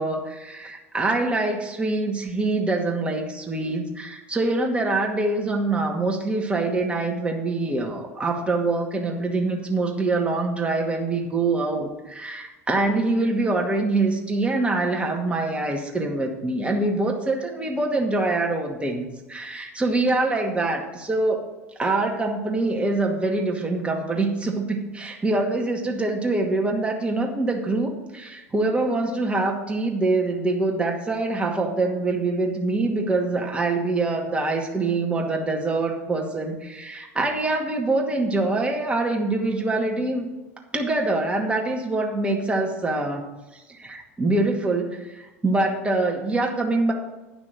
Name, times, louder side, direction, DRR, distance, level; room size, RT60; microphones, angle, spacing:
voice 1, 0.0-21.4 21.8-40.3 40.7-43.2 43.5-46.9, right 2 dB, 15° right, 1 dB, 2.1 m, -24 dB
10.0 x 6.0 x 7.4 m, 1.1 s
figure-of-eight pair, 70°, 8 cm